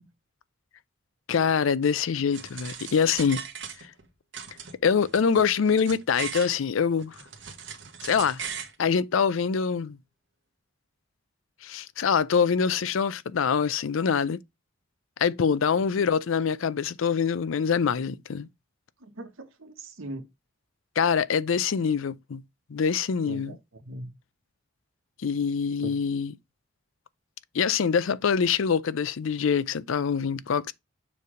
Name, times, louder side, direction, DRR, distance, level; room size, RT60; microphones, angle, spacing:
voice 1, 1.3-3.4 4.8-7.2 8.0-8.4 8.8-10.0 11.6-14.4 15.2-18.5 21.0-22.4 22.7-23.6 25.2-26.3 27.5-30.7, left 6 dB, 80° left, 0.5 m, -24 dB
sound 1, 2.3-4.0 4.3-6.6 7.0-8.7, right 7 dB, 60° right, 1.2 m, -39 dB
voice 2, 19.0-20.3 23.2-24.1 25.8-25.9, right 2 dB, 85° right, 1.4 m, -40 dB
6.9 x 3.3 x 4.9 m
head